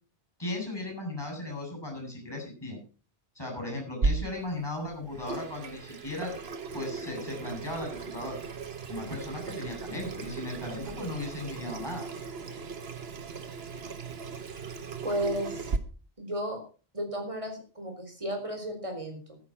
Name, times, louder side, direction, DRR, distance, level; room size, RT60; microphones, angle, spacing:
voice 1, 0.4-2.8 3.3-6.3 6.7-8.4 8.9-12.0, left 2 dB, 25° left, 1 dB, 8.0 m, -36 dB
Water tap faucet / Sink (filling or washing), 4.0-15.8, right 4 dB, 80° right, 1.5 m, -36 dB
voice 2, 15.0-15.7 16.2-16.6 16.9-19.4, right 1 dB, 30° right, 3 dB, 4.5 m, -33 dB
13.0 x 10.0 x 6.0 m, 0.37 s
omnidirectional pair, 1.0 m